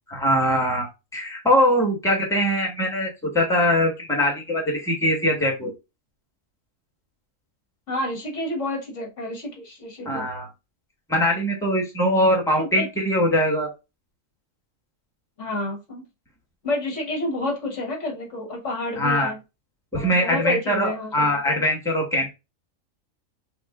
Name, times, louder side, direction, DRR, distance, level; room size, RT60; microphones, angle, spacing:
voice 1, 0.1-0.9 1.1-5.7 10.0-10.5 11.1-13.7 19.0-19.3 19.9-22.3, equal, ahead, 1.4 m, -22 dB
voice 2, 7.9-10.3 12.6-12.9 15.4-16.1 16.6-19.4 19.9-21.6, left 1 dB, 65° left, 1.7 m, -30 dB
6.2 x 2.5 x 2.4 m
omnidirectional pair, 1.4 m